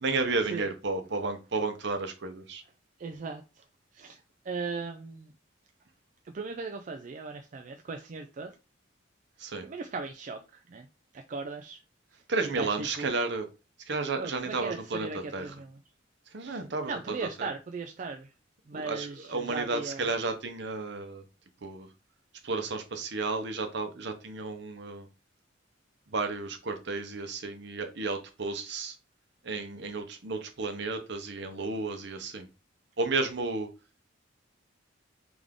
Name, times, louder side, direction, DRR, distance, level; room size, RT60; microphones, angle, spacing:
voice 1, 0.0-2.6 9.4-9.6 12.3-13.5 13.9-15.5 16.3-17.5 18.7-21.2 21.6-21.9 22.4-25.1 26.1-28.9 29.4-32.5 33.0-33.7, right 3 dB, 60° right, 6 dB, 0.8 m, -32 dB
voice 2, 3.0-3.6 3.9-5.3 6.2-8.5 9.6-10.9 11.1-11.8 12.6-13.1 14.2-15.8 16.4-18.3 18.7-20.1, right 4 dB, 40° right, 5 dB, 0.4 m, -38 dB
3.7 x 3.5 x 3.6 m, 0.31 s
head